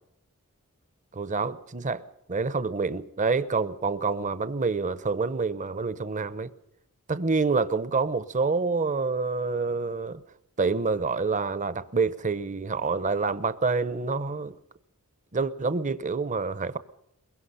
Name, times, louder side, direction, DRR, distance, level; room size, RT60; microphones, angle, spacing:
voice 1, 1.1-2.0 2.3-6.5 7.1-10.2 10.6-14.6 15.3-16.8, right 4 dB, 35° right, 0.8 m, -27 dB
23.0 x 22.0 x 5.6 m
head